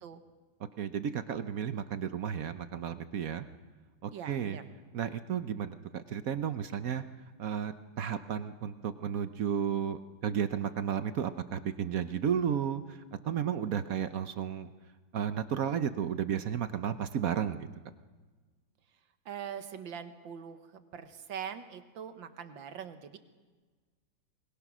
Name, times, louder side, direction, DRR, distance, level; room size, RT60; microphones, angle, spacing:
voice 1, 0.8-3.4 4.0-4.6 4.9-7.0 7.4-14.7 15.1-17.7, right 8 dB, 60° right, 11 dB, 1.0 m, -33 dB
voice 2, 4.1-4.7 19.3-23.2, right 8 dB, 75° right, 9 dB, 1.9 m, -42 dB
24.0 x 21.5 x 6.2 m, 1.4 s
omnidirectional pair, 2.1 m